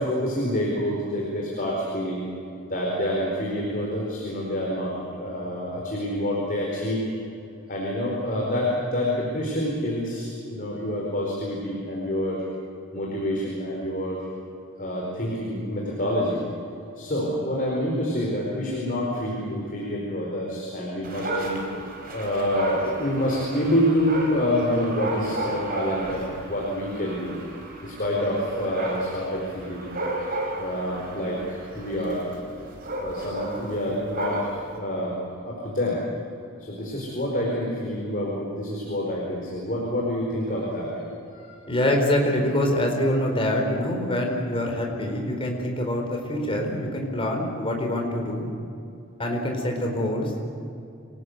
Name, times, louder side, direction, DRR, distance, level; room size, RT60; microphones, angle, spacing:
voice 1, 0.0-2.2 2.7-7.0 7.7-12.4 12.9-14.3 14.8-16.4 16.9-21.6 22.1-27.3 27.8-29.9 30.6-32.3 33.0-36.0 36.6-40.9 41.3-41.6, equal, 40° left, -3 dB, 4.7 m, -27 dB
Dog, 21.0-34.8, right 2 dB, 45° right, 4.8 m, -34 dB
voice 2, 41.7-48.5 49.2-50.5, left 1 dB, 25° left, 1 dB, 4.3 m, -25 dB
27.5 x 18.5 x 8.2 m, 2.7 s
head